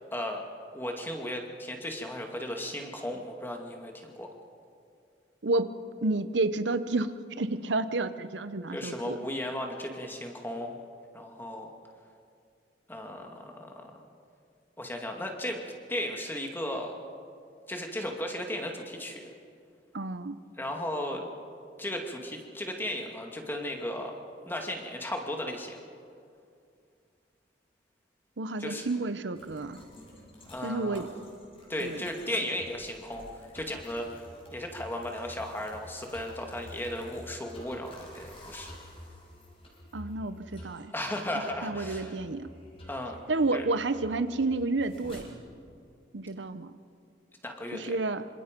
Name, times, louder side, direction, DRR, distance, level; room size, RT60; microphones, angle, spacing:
voice 1, 0.1-0.4 0.7-4.3 8.7-10.8 11.1-11.7 12.9-14.0 14.8-15.6 15.9-17.0 17.7-19.2 20.6-21.2 21.8-24.2 24.5-25.8 28.6-28.9 30.5-31.1 31.7-33.2 33.5-34.1 34.5-38.7 40.9-42.1 42.9-43.2 43.5-43.7 47.4-48.0, left 1 dB, 10° left, 2 dB, 2.2 m, -35 dB
voice 2, 5.4-5.7 6.0-9.2 19.9-20.4 28.4-29.8 30.6-31.1 31.8-32.0 39.9-40.9 41.6-42.5 43.3-45.3 46.1-46.7 47.7-48.3, right 2 dB, 90° right, 11 dB, 0.9 m, -30 dB
sound 1, 29.3-45.2, left 1 dB, 35° left, 6.0 m, -50 dB
26.5 x 26.0 x 5.3 m, 2.4 s
head